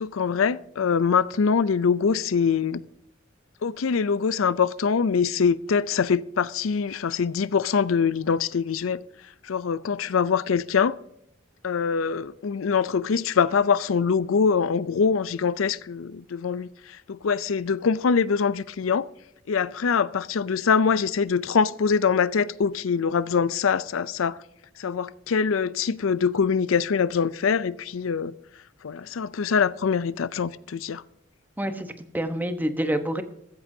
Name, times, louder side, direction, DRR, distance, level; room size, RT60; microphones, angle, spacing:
voice 1, 0.0-2.8 3.6-9.0 9.4-11.0 11.6-19.1 19.5-24.4 24.8-28.3 28.8-31.0, left 6 dB, 85° left, 0.5 m, -24 dB
voice 2, 31.6-33.2, right 1 dB, 10° right, 1.0 m, -27 dB
14.5 x 14.0 x 2.7 m
head